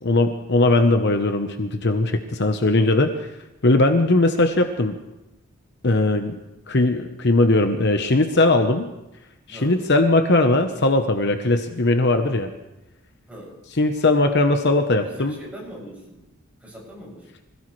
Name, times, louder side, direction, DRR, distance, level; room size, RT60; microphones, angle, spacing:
voice 1, 0.0-3.1 3.6-5.0 5.8-6.4 6.7-8.9 9.5-12.5 13.8-15.4, left 2 dB, 55° left, 6 dB, 1.0 m, -19 dB
voice 2, 9.5-9.8 13.3-13.6 14.9-16.2 16.6-17.3, equal, 5° right, -4 dB, 6.6 m, -41 dB
25.5 x 16.5 x 3.3 m, 0.95 s
head